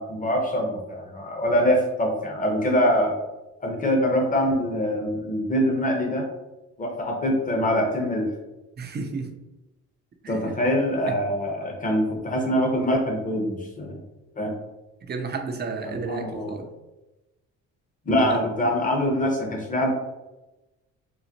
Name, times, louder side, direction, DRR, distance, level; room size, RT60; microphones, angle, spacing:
voice 1, 0.0-3.1 3.6-6.2 6.8-8.2 10.3-14.0 14.4-14.5 15.9-16.5 18.1-19.9, equal, 25° left, 1 dB, 0.8 m, -24 dB
voice 2, 8.8-9.3 10.2-10.5 11.1-11.2 15.0-16.7 18.2-18.4, right 4 dB, 30° right, 5 dB, 0.5 m, -32 dB
3.8 x 2.1 x 2.8 m, 1.0 s
cardioid pair, 95°, 33 cm